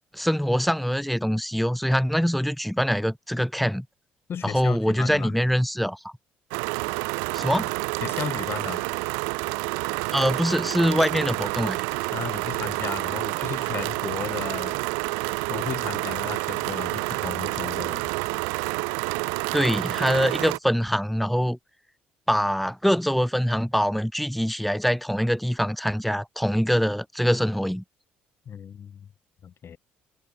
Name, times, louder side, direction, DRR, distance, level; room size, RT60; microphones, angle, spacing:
voice 1, 0.1-3.8 4.4-6.1 7.3-7.7 10.1-11.8 19.5-21.6 22.3-27.8, equal, ahead, 1.5 m, -24 dB
voice 2, 4.3-5.4 8.0-8.8 12.1-14.8 15.5-18.1 28.4-29.1 29.4-29.8, left 8 dB, 50° left, 6.8 m, -35 dB
sound 1, 6.5-20.6, right 40 dB or more, 75° right, 1.0 m, -29 dB
hypercardioid pair, 50°, 5 cm